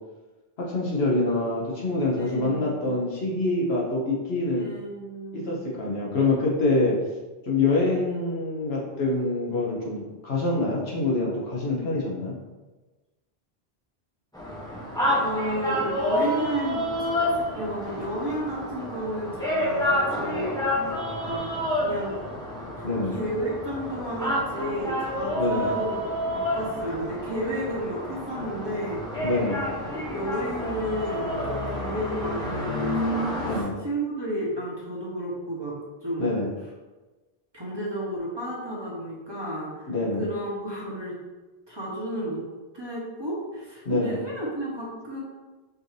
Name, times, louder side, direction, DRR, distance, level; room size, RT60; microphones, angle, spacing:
voice 1, 0.6-4.7 5.3-7.0 7.5-12.3 22.8-23.1 25.3-25.7 29.2-29.6 33.4-33.7 36.2-36.5 39.9-40.2 43.8-44.2, left 2 dB, 80° left, -3 dB, 1.2 m, -25 dB
voice 2, 2.2-3.0 4.6-5.9 15.2-17.2 17.6-20.6 21.2-22.2 22.8-22.9 23.1-26.0 26.2-29.0 29.9-36.3 37.5-39.9 40.2-41.2 41.7-42.5 42.7-45.2, right 1 dB, 25° right, -6 dB, 0.9 m, -32 dB
sound 1, 14.3-33.6, left 1 dB, 5° left, 0.7 m, -29 dB
4.8 x 2.6 x 3.2 m, 1.2 s
omnidirectional pair, 1.0 m